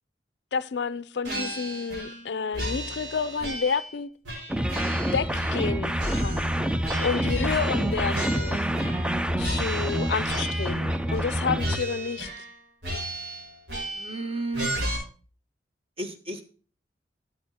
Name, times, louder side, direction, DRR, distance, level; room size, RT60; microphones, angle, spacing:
voice 1, 0.5-4.1 4.9-8.6 9.4-12.3, left 5 dB, 75° left, 0.5 m, -30 dB
sound 1, 1.2-2.3 2.5-3.9 4.2-5.7 6.0-9.1 9.4-10.8 11.1-11.3 11.6-12.5 12.8-14.2 14.5-15.0, right 1 dB, 85° right, 5.4 m, -34 dB
sound 2, 4.5-11.8, equal, 5° right, 0.4 m, -27 dB
voice 2, 13.9-14.7 16.0-16.4, right 2 dB, 35° right, 1.3 m, -32 dB
14.0 x 8.2 x 2.8 m
head